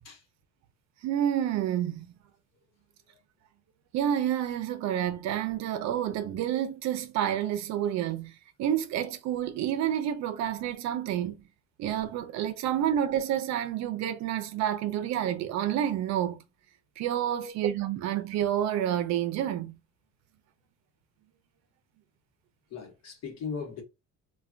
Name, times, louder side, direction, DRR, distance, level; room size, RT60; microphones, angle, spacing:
voice 1, 1.0-2.2 3.9-8.3 8.6-11.4 11.8-16.4 17.0-19.7, right 10 dB, 65° right, 0.5 m, -29 dB
voice 2, 22.7-23.8, left 5 dB, 60° left, 1.0 m, -38 dB
3.3 x 2.2 x 2.4 m
cardioid pair, 165°, 30 cm